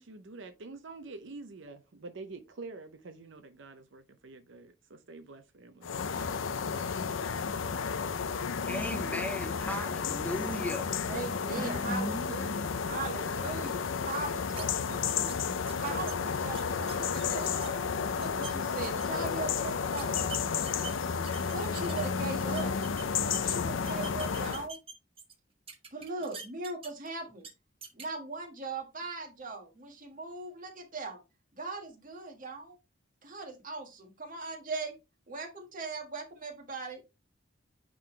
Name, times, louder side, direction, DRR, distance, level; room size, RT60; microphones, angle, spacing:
voice 1, 0.0-5.9, right 3 dB, 70° right, 0.7 m, -47 dB
sound 1, 5.8-24.7, left 6 dB, 90° left, 0.6 m, -32 dB
voice 2, 8.6-11.0 11.6-12.4, left 1 dB, 10° left, 0.6 m, -36 dB
voice 3, 11.1-15.4 15.8-17.8 18.2-20.2 21.4-22.7 23.2-24.8 25.9-27.5 27.9-31.2 31.5-32.8 33.2-35.0 35.3-37.1, right 3 dB, 45° right, 1.8 m, -39 dB
sound 2, 14.6-14.7 15.1-15.4 15.7-17.7 18.1-18.5 18.8-19.3 20.0-22.1 22.4-23.5 23.8-25.3 25.7-27.1 27.4-27.5 27.8-28.1, right 5 dB, 30° right, 1.3 m, -44 dB
9.3 x 3.8 x 3.3 m
head